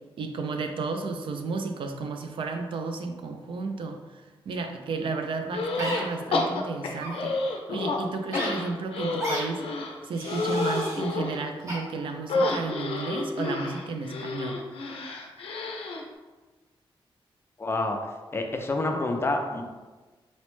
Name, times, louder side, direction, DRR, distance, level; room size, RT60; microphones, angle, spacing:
voice 1, 0.2-4.0 4.5-9.6 10.0-14.6, right 3 dB, 65° right, 5 dB, 0.4 m, -32 dB
sound 1, 5.5-6.0 6.3-8.0 8.3-11.4 12.3-16.0, left 3 dB, 90° left, 0.4 m, -30 dB
sound 2, 5.8-6.0 6.9-7.1 8.3-8.5 9.2-9.4 10.1-11.0 11.7-11.8, equal, 30° right, 0.8 m, -33 dB
voice 2, 17.6-18.0 18.3-19.6, left 2 dB, 25° left, 3 dB, 0.3 m, -27 dB
4.1 x 2.0 x 3.0 m, 1.3 s
wide cardioid pair, 140°, 9 cm